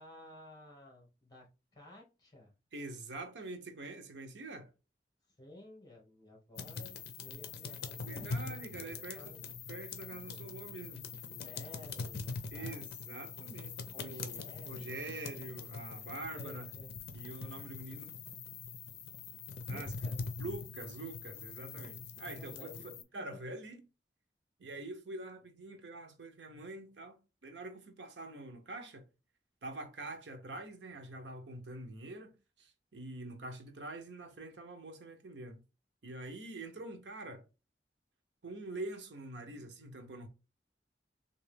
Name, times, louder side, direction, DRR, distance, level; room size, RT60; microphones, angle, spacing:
voice 1, 0.0-2.5 5.4-9.5 10.3-10.5 11.2-13.3 13.9-15.0 16.3-16.9 19.6-20.2 22.3-23.4, left 1 dB, 25° left, 1.4 m, -54 dB
voice 2, 2.7-4.7 8.1-9.3 9.7-11.0 12.5-16.7 17.1-18.1 19.7-19.9 20.4-23.8 24.6-29.0 29.6-35.6 36.0-37.4 38.4-40.3, right 2 dB, 90° right, 0.8 m, -45 dB
sound 1, 6.6-23.0, left 4 dB, 60° left, 0.5 m, -43 dB
3.5 x 2.6 x 3.3 m
head